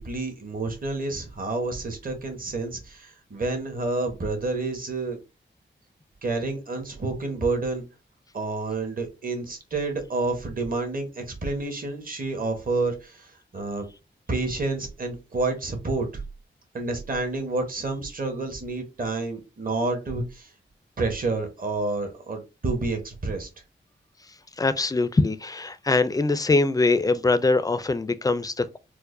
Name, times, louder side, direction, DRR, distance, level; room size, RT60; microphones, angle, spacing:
voice 1, 0.0-5.2 6.2-7.8 8.3-13.8 14.3-16.2 16.7-20.5 21.0-23.5, right 3 dB, 45° right, 1.1 m, -29 dB
voice 2, 24.6-28.8, left 3 dB, 20° left, 0.4 m, -23 dB
4.6 x 2.1 x 2.5 m
cardioid pair, 70°, 20 cm